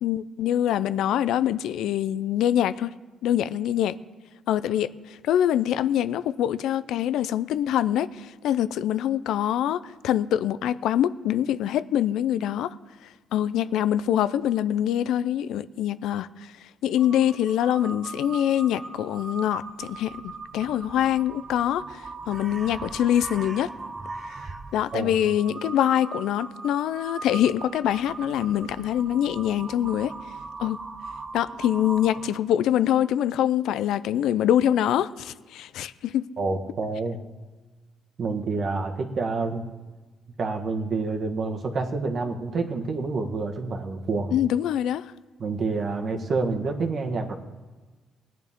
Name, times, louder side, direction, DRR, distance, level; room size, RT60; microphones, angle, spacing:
voice 1, 0.0-2.9 3.2-4.0 4.5-4.9 5.2-12.8 13.3-16.5 16.8-22.0 22.3-23.7 24.7-30.1 30.6-30.8 31.3-36.3 44.3-45.1, left 11 dB, 85° left, 15 dB, 0.4 m, -24 dB
Crow, 17.0-32.5, right 3 dB, 35° right, 1.0 m, -40 dB
voice 2, 36.4-37.2 38.2-39.6 40.4-44.3 45.4-47.4, right 3 dB, 50° right, 4 dB, 1.5 m, -28 dB
19.5 x 9.2 x 3.7 m, 1.3 s
cardioid pair, 90°, 0 cm